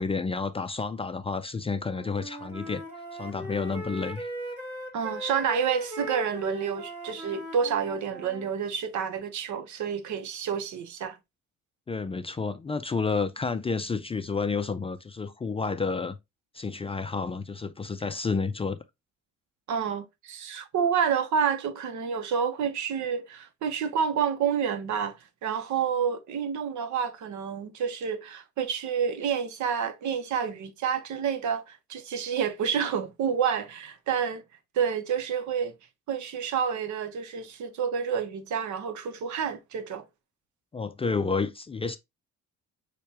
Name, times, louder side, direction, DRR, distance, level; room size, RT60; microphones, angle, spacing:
voice 1, 0.0-2.8 3.2-4.3 11.9-16.2 16.5-18.8 40.7-42.0, left 4 dB, 20° left, 0.3 m, -30 dB
Wind instrument woodwind instrument, 1.7-8.5, equal, 50° right, 2.1 m, -39 dB
voice 2, 4.9-11.2 19.7-34.4 34.7-35.7 36.1-40.0, right 7 dB, 75° right, 0.8 m, -29 dB
6.4 x 2.3 x 2.8 m
cardioid pair, 90°, 30 cm